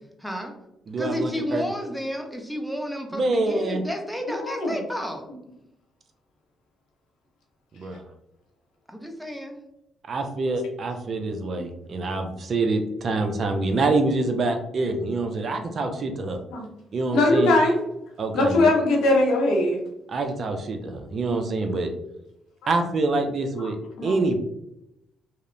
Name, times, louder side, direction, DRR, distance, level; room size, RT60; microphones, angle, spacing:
voice 1, 0.2-0.5 1.0-5.3 8.9-9.6, equal, ahead, 2 dB, 0.5 m, -31 dB
voice 2, 0.9-1.6 3.1-3.8 7.7-8.0 10.1-16.4 16.9-17.5 18.2-18.7 20.1-21.9 22.7-23.8 24.0-24.4, right 3 dB, 50° right, 6 dB, 0.4 m, -26 dB
voice 3, 4.4-4.7 11.5-11.6 16.5-16.6 17.1-17.8 18.3-19.8 22.6-22.7 24.0-24.1, left 2 dB, 85° left, 0 dB, 0.8 m, -20 dB
2.7 x 2.0 x 2.5 m, 0.83 s
cardioid pair, 90°, 0 cm